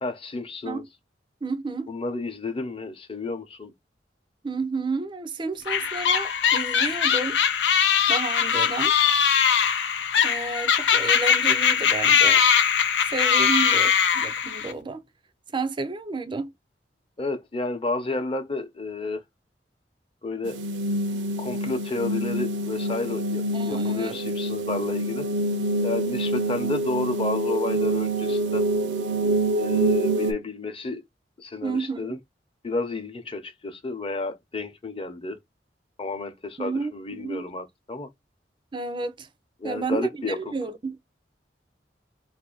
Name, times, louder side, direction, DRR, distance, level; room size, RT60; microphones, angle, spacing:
voice 1, 0.0-0.8 1.9-3.7 17.2-19.2 20.2-20.6 21.4-25.3 25.8-28.6 29.6-31.0 31.4-32.2 32.6-35.4 36.0-38.1 39.6-40.5, left 2 dB, 30° left, 0.8 m, -31 dB
voice 2, 1.4-1.9 4.4-7.4 8.1-8.9 10.2-12.4 13.1-15.0 15.5-16.5 23.5-24.2 26.6-26.8 31.6-32.2 36.6-37.5 38.7-39.3 39.6-41.0, right 3 dB, 30° right, 0.5 m, -31 dB
sound 1, 5.7-14.7, left 7 dB, 85° left, 0.5 m, -21 dB
sound 2, 20.4-30.3, right 1 dB, 80° right, 0.5 m, -26 dB
2.7 x 2.6 x 3.9 m
head